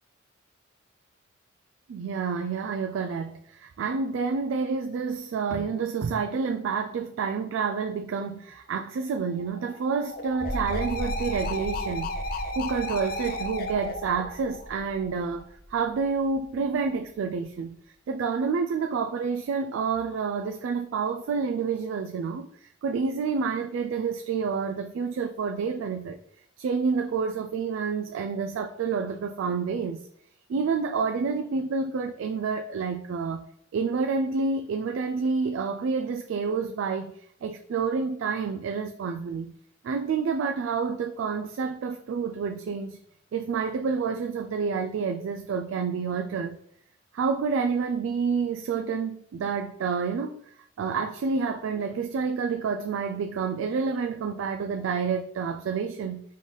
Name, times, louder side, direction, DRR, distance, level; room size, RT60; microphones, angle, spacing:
voice 1, 1.9-17.8 18.1-26.2 26.6-30.1 30.5-33.4 33.7-39.5 39.8-43.0 43.3-46.6 47.1-50.4 50.8-56.2, right 5 dB, 85° right, 0.3 m, -29 dB
sound 1, 9.0-15.4, left 1 dB, 50° left, 0.4 m, -35 dB
sound 2, 10.2-16.7, equal, 15° right, 0.7 m, -38 dB
3.9 x 3.2 x 3.8 m
head